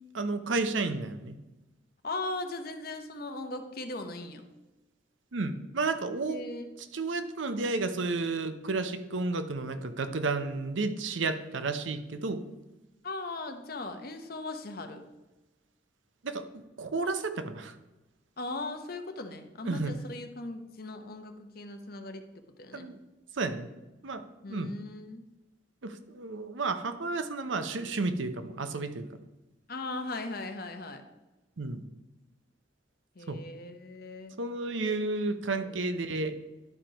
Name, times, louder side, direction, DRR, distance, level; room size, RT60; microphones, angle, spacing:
voice 1, 0.1-1.4 5.3-6.4 6.9-12.4 16.2-17.7 19.7-19.9 22.7-23.0 23.4-23.7 24.0-24.2 24.5-24.7 25.8-29.1 31.6-31.8 33.3-33.4 34.4-36.3, right 3 dB, 85° right, 10 dB, 0.7 m, -32 dB
voice 2, 2.0-4.4 6.3-6.7 13.0-15.0 18.4-22.9 24.4-25.2 29.7-31.0 33.2-34.4 35.4-35.8, left 2 dB, 50° left, 7 dB, 0.8 m, -39 dB
11.0 x 4.4 x 5.1 m, 1.1 s
head